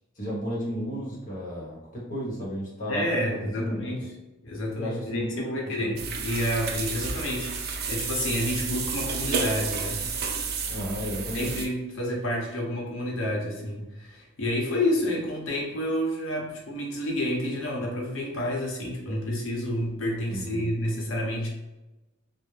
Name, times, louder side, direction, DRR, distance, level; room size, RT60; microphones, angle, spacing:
voice 1, 0.2-3.2 3.6-3.9 4.8-5.9 10.7-11.5 20.3-20.7, equal, 40° left, -6 dB, 1.0 m, -33 dB
voice 2, 2.9-4.1 4.4-10.0 11.3-21.5, left 1 dB, 70° left, -2 dB, 0.8 m, -29 dB
sound 1, 6.0-11.7, right 4 dB, 50° right, 0.3 m, -31 dB
2.5 x 2.1 x 3.1 m, 1.0 s
head